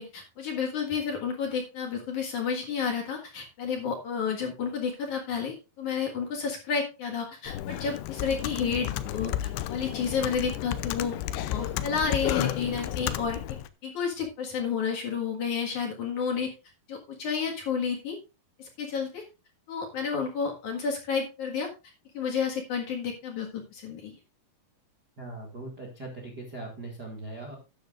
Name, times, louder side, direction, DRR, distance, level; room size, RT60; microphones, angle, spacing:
voice 1, 0.0-9.3 9.7-11.2 11.5-13.4 13.8-16.5 16.9-18.2 18.6-19.2 19.7-21.7 22.1-24.2, left 6 dB, 55° left, 1 dB, 2.7 m, -31 dB
Computer keyboard, 7.5-13.7, left 13 dB, 85° left, 2.8 m, -32 dB
voice 2, 25.2-27.5, right 2 dB, 40° right, -1 dB, 1.5 m, -40 dB
13.5 x 9.7 x 2.5 m, 0.29 s
omnidirectional pair, 4.9 m